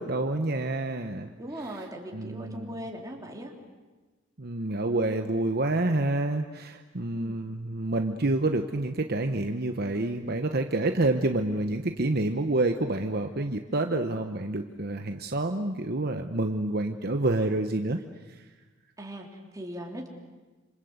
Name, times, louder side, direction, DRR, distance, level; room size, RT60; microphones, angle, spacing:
voice 1, 0.0-1.3 1.6-1.9 2.1-2.8 4.4-18.5, right 2 dB, 50° right, 6 dB, 1.1 m, -28 dB
voice 2, 1.4-3.5 5.2-5.4 7.1-7.4 10.8-11.1 19.0-20.1, equal, 15° right, 1 dB, 3.7 m, -39 dB
27.5 x 27.0 x 8.1 m, 1.3 s
head